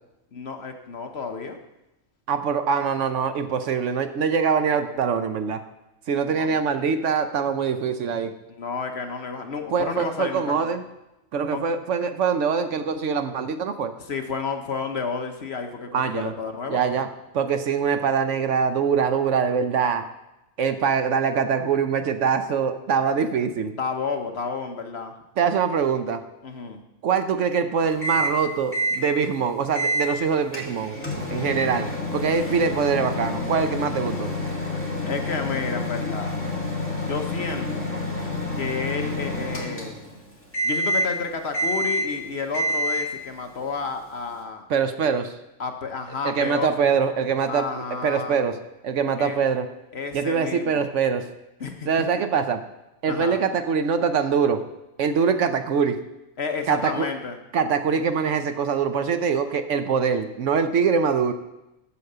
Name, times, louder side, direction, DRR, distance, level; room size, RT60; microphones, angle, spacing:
voice 1, 0.3-1.6 6.2-6.5 8.5-10.7 11.5-11.6 14.1-16.8 23.8-25.1 26.4-26.8 35.0-36.4 36.9-37.9 38.5-40.0 40.6-44.7 45.6-47.0 47.5-48.4 49.2-49.4 49.9-50.9 51.6-51.9 53.1-53.4 56.4-57.4, left 5 dB, 55° left, 5 dB, 1.1 m, -31 dB
voice 2, 2.3-5.6 6.1-8.3 9.7-10.8 11.3-13.9 15.9-16.3 16.7-17.1 17.3-20.0 20.6-23.7 25.4-26.2 27.0-31.0 31.3-34.3 44.7-45.4 46.2-48.6 48.8-49.7 50.1-51.3 51.8-52.6 53.0-54.6 55.0-56.0 56.7-57.1 57.5-61.3, right 6 dB, 65° right, 9 dB, 1.0 m, -23 dB
Microwave oven, 28.0-28.4 28.7-29.0 29.7-30.1 30.5-40.2 40.5-41.2 41.5-42.2 42.5-43.2, left 1 dB, 10° left, 1.7 m, -28 dB
8.4 x 6.9 x 6.7 m, 0.93 s
omnidirectional pair, 1.4 m